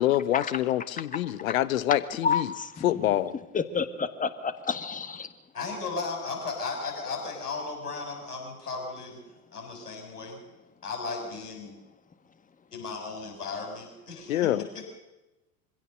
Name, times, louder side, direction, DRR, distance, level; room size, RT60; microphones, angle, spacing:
voice 1, 0.0-2.5 2.8-3.4 14.3-14.6, left 13 dB, 60° left, 16 dB, 1.2 m, -26 dB
voice 2, 2.2-2.8 3.5-5.3, left 6 dB, 15° left, 11 dB, 1.6 m, -30 dB
voice 3, 5.5-9.2 9.5-10.4 10.8-11.8 12.7-14.8, left 4 dB, 80° left, 1 dB, 6.7 m, -35 dB
24.5 x 16.5 x 6.7 m, 1.0 s
figure-of-eight pair, 80°, 46 cm